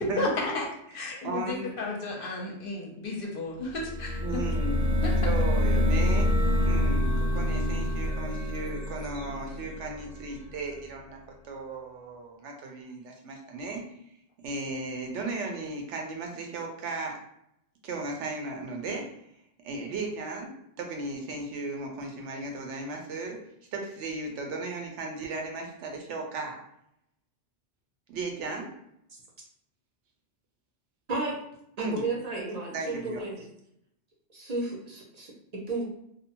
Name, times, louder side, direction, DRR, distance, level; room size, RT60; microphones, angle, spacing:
voice 1, 0.2-0.7 0.9-4.2 5.0-5.1, left 2 dB, 60° left, -1 dB, 0.7 m, -33 dB
voice 2, 0.9-1.7 4.2-5.0 5.2-6.3 6.6-11.2 11.4-13.8 14.4-17.2 17.8-19.1 19.6-23.4 23.7-26.6 28.1-28.7 31.8-32.0 32.7-33.2, right 3 dB, 90° right, 2 dB, 0.9 m, -36 dB
sound 1, 3.7-10.5, left 1 dB, 20° left, 0.6 m, -26 dB
voice 3, 31.1-31.4 31.8-33.4 34.3-35.8, right 3 dB, 45° right, -2 dB, 0.5 m, -33 dB
2.6 x 2.1 x 2.8 m, 0.75 s
omnidirectional pair, 1.2 m